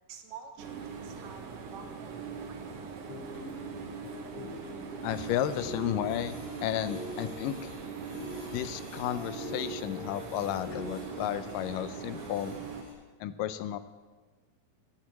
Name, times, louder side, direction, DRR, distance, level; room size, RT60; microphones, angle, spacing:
voice 1, 0.1-2.5, right 6 dB, 80° right, 3 dB, 2.8 m, -49 dB
sound 1, 0.6-12.8, right 5 dB, 60° right, 1.7 m, -42 dB
sound 2, 2.8-11.3, equal, 50° left, 1.1 m, -44 dB
Printer, 3.2-4.2 4.6-12.9, left 2 dB, 35° left, 4.7 m, -54 dB
voice 2, 5.0-7.7 8.5-12.6 13.2-13.8, left 11 dB, 90° left, 13 dB, 2.3 m, -33 dB
10.5 x 9.5 x 7.5 m, 1.3 s
omnidirectional pair, 3.8 m